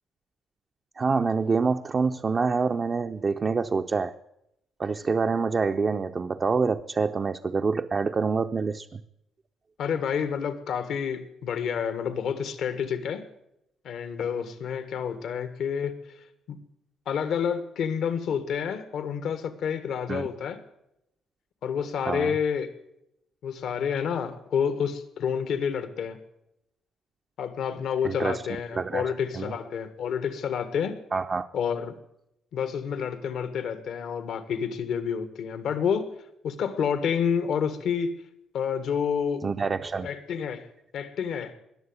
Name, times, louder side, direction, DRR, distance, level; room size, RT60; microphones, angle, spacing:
voice 1, 1.0-4.1 4.8-9.0 20.1-20.3 22.0-22.3 28.0-28.4 28.8-29.5 31.1-31.5 39.4-40.1, right 4 dB, 35° right, 4 dB, 0.6 m, -26 dB
voice 2, 9.8-13.2 13.8-16.0 16.5-16.6 17.0-20.6 21.6-22.7 23.4-26.2 27.4-31.0 31.5-31.9 32.5-36.1 36.4-38.1 38.5-39.4 40.0-40.7 40.9-41.5, left 7 dB, 75° left, 12 dB, 1.6 m, -29 dB
20.5 x 7.1 x 9.6 m, 0.82 s
cardioid pair, 90°, 0 cm